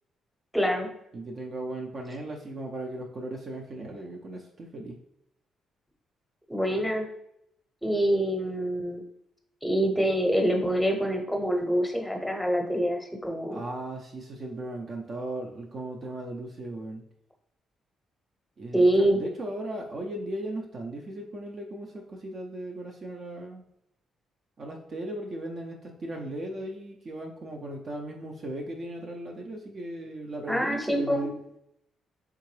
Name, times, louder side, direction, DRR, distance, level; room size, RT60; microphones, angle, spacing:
voice 1, 0.5-0.9 6.5-7.1 7.8-9.0 9.6-13.6 18.7-19.2 30.5-31.3, right 1 dB, ahead, 2 dB, 0.8 m, -25 dB
voice 2, 1.1-5.0 13.5-17.0 18.6-23.6 24.6-31.4, right 1 dB, 45° right, 0 dB, 0.5 m, -37 dB
3.6 x 3.4 x 3.2 m, 0.78 s
cardioid pair, 90°, 0 cm